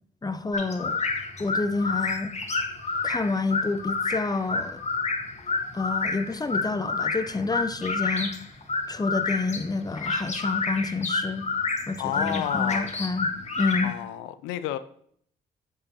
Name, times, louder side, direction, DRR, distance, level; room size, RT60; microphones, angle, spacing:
voice 1, 0.2-1.0 1.4-2.3 3.0-4.8 5.7-8.3 8.9-11.5 11.9-13.3 13.6-13.9, left 3 dB, 20° left, 0.8 m, -28 dB
sound 1, 0.5-13.9, left 4 dB, 35° left, 1.6 m, -29 dB
voice 2, 12.0-12.9 13.8-14.8, left 12 dB, 85° left, 0.5 m, -31 dB
8.6 x 7.8 x 3.0 m
hypercardioid pair, 45°, 20 cm